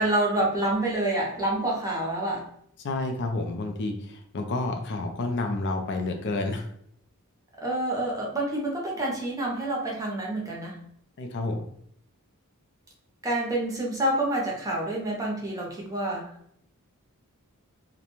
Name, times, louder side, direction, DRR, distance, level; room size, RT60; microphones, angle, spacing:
voice 1, 0.0-2.4 7.6-10.8 13.2-16.3, right 1 dB, 15° right, -2 dB, 0.6 m, -27 dB
voice 2, 2.8-6.7 11.2-11.6, left 2 dB, 50° left, 5 dB, 0.4 m, -30 dB
2.5 x 2.1 x 2.9 m, 0.67 s
head